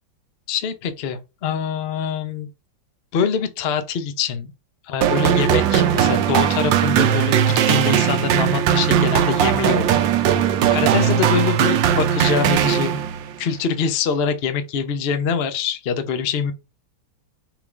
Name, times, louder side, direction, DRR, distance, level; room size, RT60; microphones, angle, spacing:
voice 1, 0.5-2.5 3.1-4.5 4.8-10.0 10.7-13.0 13.4-16.5, left 7 dB, 70° left, 0.5 m, -24 dB
sound 1, 5.0-13.3, right 9 dB, 75° right, 1.3 m, -18 dB
6.1 x 3.4 x 2.5 m
omnidirectional pair, 2.1 m